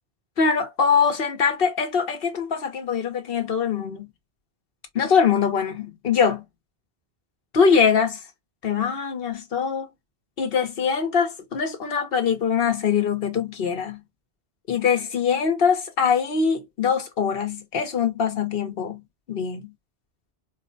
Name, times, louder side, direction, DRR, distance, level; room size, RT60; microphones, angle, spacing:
voice 1, 0.4-4.1 4.9-6.4 7.5-8.2 8.6-9.9 10.4-14.0 14.7-19.0 19.3-19.7, left 6 dB, 65° left, 1.0 m, -23 dB
4.3 x 2.1 x 2.6 m
omnidirectional pair, 1.1 m